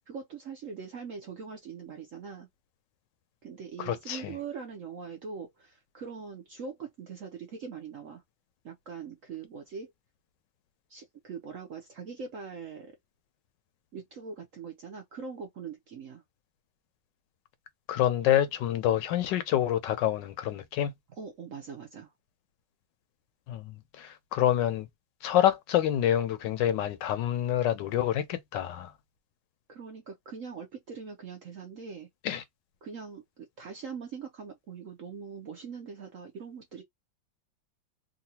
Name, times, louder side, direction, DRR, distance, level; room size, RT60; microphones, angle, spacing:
voice 1, 0.1-2.5 3.4-8.2 8.6-9.9 10.9-13.0 13.9-16.2 21.2-22.1 29.7-32.1 32.8-36.8, right 6 dB, 60° right, 0.8 m, -42 dB
voice 2, 3.8-4.3 17.9-20.9 23.5-24.9 25.2-28.9 32.2-32.4, left 11 dB, 75° left, 1.2 m, -27 dB
3.8 x 2.2 x 2.8 m
omnidirectional pair, 2.1 m